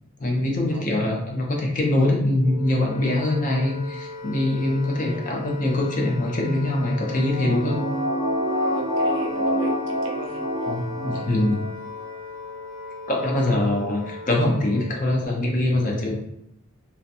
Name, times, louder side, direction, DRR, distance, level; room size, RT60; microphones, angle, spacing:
voice 1, 0.2-7.8 10.7-11.6 13.1-16.2, left 1 dB, 35° left, -1 dB, 0.5 m, -23 dB
Wind instrument woodwind instrument, 2.4-15.0, left 4 dB, 15° right, 1.0 m, -38 dB
sound 1, 6.9-11.7 12.0-12.1, equal, 65° left, 0.8 m, -27 dB
voice 2, 8.7-10.4 11.1-11.3, right 3 dB, 60° right, 0 dB, 0.5 m, -36 dB
2.6 x 2.2 x 2.5 m, 0.78 s
head